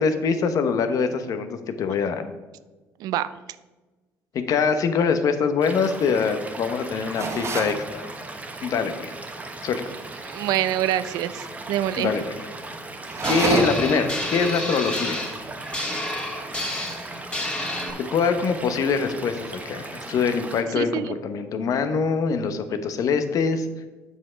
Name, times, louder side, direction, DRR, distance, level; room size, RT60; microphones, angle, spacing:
voice 1, 0.0-2.3 4.3-8.2 8.6-9.1 9.6-9.8 12.0-12.4 13.3-15.2 18.0-23.7, left 5 dB, 60° left, 9 dB, 1.0 m, -24 dB
Stream / Liquid, 5.6-20.6, right 2 dB, 20° right, 1.2 m, -38 dB
sound 1, 7.2-7.8 13.0-14.0, right 4 dB, 45° right, 1.5 m, -26 dB
voice 2, 10.2-12.1 20.8-21.2, right 12 dB, 75° right, 15 dB, 0.5 m, -26 dB
sound 2, 13.2-17.9, left 1 dB, 15° left, 2.3 m, -30 dB
7.3 x 6.3 x 5.1 m, 1.2 s
supercardioid pair, 80°, 7 cm